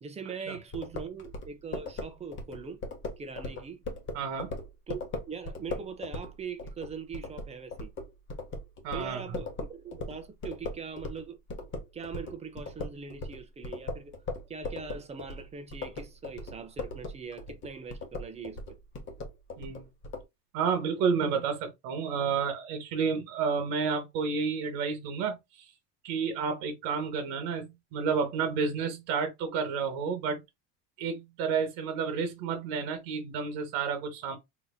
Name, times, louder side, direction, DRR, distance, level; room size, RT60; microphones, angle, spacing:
voice 1, 0.0-2.8 3.2-3.8 4.9-7.9 8.9-11.7 11.9-14.1 14.5-18.6, right 5 dB, 20° right, 0.5 m, -41 dB
sound 1, 0.7-11.2 11.5-20.2, left 3 dB, 35° left, 0.9 m, -38 dB
voice 2, 4.1-4.5 8.8-9.4 19.6-19.9 20.5-25.7 26.0-30.4 31.0-34.4, right 5 dB, 85° right, 1.1 m, -30 dB
3.9 x 2.8 x 2.3 m
cardioid pair, 150°, 36 cm